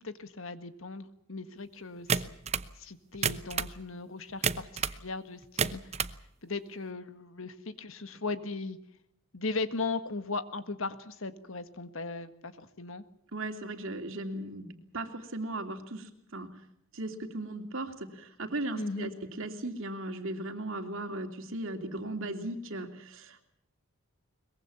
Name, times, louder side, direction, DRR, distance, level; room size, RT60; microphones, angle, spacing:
voice 1, 0.0-2.4 2.8-6.0 6.4-8.8 9.3-13.0 18.8-19.1, left 3 dB, 60° left, 11 dB, 1.7 m, -38 dB
sound 1, 2.1-2.7 3.1-3.8 4.4-5.0 5.4-6.2, right 6 dB, 30° right, 0.8 m, -30 dB
voice 2, 13.3-16.5 16.9-23.4, right 2 dB, 60° right, 6 dB, 3.0 m, -37 dB
23.0 x 21.5 x 7.2 m, 0.75 s
head